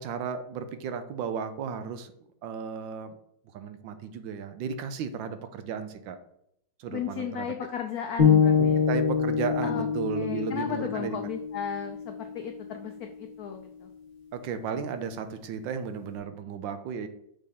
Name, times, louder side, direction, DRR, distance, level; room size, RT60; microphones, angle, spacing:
voice 1, 0.0-2.1 2.4-3.2 3.5-6.2 6.8-7.5 8.6-11.2 14.3-17.1, right 6 dB, 75° right, 9 dB, 1.3 m, -34 dB
voice 2, 6.9-8.8 9.6-9.9 10.1-13.9, left 7 dB, 80° left, 5 dB, 0.8 m, -35 dB
sound 1, 8.2-12.3, left 7 dB, 35° left, 1.0 m, -25 dB
6.5 x 4.1 x 3.6 m, 0.74 s
omnidirectional pair, 2.2 m